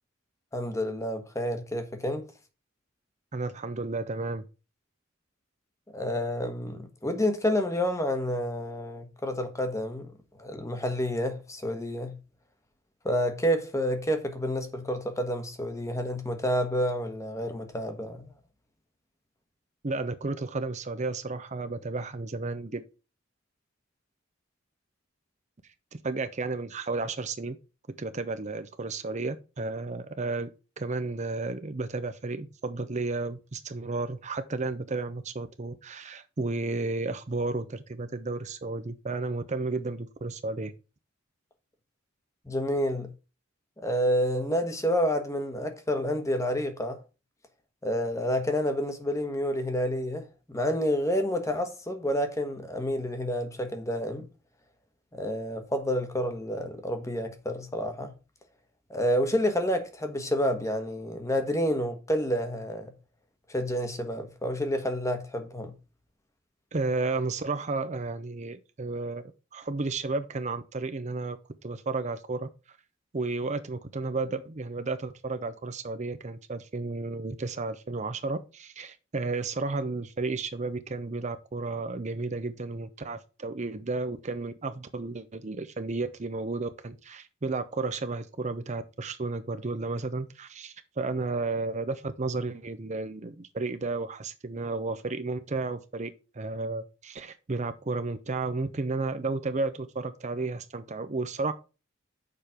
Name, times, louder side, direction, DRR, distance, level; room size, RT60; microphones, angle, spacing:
voice 1, 0.5-2.3 5.9-10.1 10.4-12.2 13.0-18.2 42.4-43.1 43.8-47.0 47.8-54.3 55.1-58.1 58.9-62.9 63.5-65.7, equal, 15° left, 1.2 m, -29 dB
voice 2, 3.3-4.4 19.8-22.8 25.9-27.6 28.0-30.5 30.8-40.7 66.7-71.4 71.6-72.8 73.1-101.5, right 3 dB, 35° right, 0.6 m, -32 dB
6.9 x 5.0 x 5.8 m
head